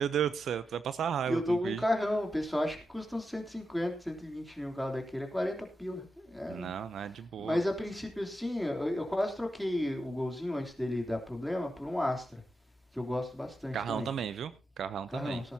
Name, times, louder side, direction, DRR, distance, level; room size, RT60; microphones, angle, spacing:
voice 1, 0.0-1.8 6.5-7.6 13.7-15.4, right 8 dB, 65° right, 14 dB, 0.6 m, -34 dB
voice 2, 1.3-6.7 7.4-12.2 12.9-14.1 15.1-15.5, left 1 dB, 5° left, 2 dB, 3.2 m, -33 dB
18.5 x 10.5 x 2.8 m, 0.31 s
cardioid pair, 90°, 0 cm